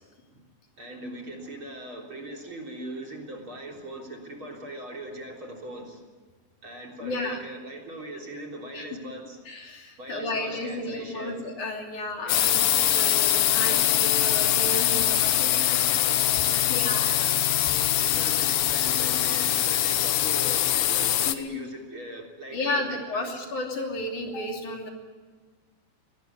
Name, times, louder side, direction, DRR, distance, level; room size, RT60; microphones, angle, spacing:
voice 1, 0.8-6.1 6.6-9.4 10.0-11.4 12.2-12.6 15.4-16.2 16.5-17.4 18.0-23.3, right 1 dB, 35° right, 0 dB, 4.2 m, -40 dB
voice 2, 7.0-7.4 8.7-8.9 9.5-15.9 16.5-17.1 18.4-18.5 21.3-21.6 22.5-24.9, left 2 dB, 60° left, 2 dB, 4.4 m, -33 dB
sound 1, 12.3-21.3, left 12 dB, 80° left, 2.8 m, -23 dB
23.0 x 19.5 x 9.7 m, 1.4 s
omnidirectional pair, 4.1 m